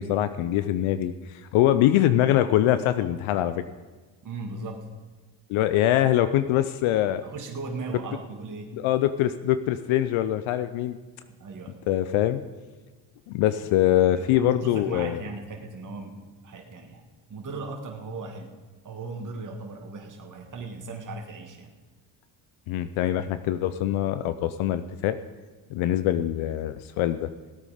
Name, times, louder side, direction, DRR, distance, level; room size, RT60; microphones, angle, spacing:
voice 1, 0.0-3.6 5.5-7.2 8.7-11.0 11.9-12.4 13.3-15.2 22.7-25.2 25.7-27.3, left 12 dB, 80° left, 12 dB, 0.6 m, -23 dB
voice 2, 4.2-4.9 7.2-8.7 11.3-11.7 14.1-17.0 17.3-18.5 18.8-21.7, right 3 dB, 40° right, 1 dB, 1.8 m, -37 dB
17.0 x 8.4 x 5.0 m, 1.3 s
cardioid pair, 80°, 48 cm